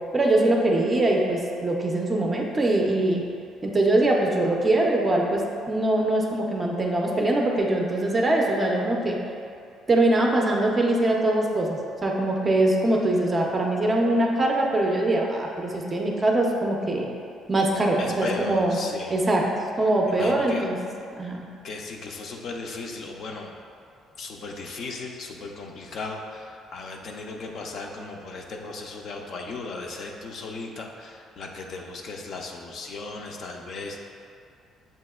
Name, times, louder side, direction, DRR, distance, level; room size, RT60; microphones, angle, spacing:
voice 1, 0.1-3.2 3.6-5.4 5.7-9.2 9.9-17.1 17.5-18.8 19.1-19.4 19.8-20.8 21.2-21.4, right 1 dB, 20° right, 0 dB, 0.4 m, -22 dB
voice 2, 18.0-19.1 20.1-20.7 21.6-23.5 24.2-34.0, left 3 dB, 45° left, 1 dB, 0.4 m, -36 dB
7.5 x 2.7 x 2.3 m, 2.4 s
cardioid pair, 160°, 0 cm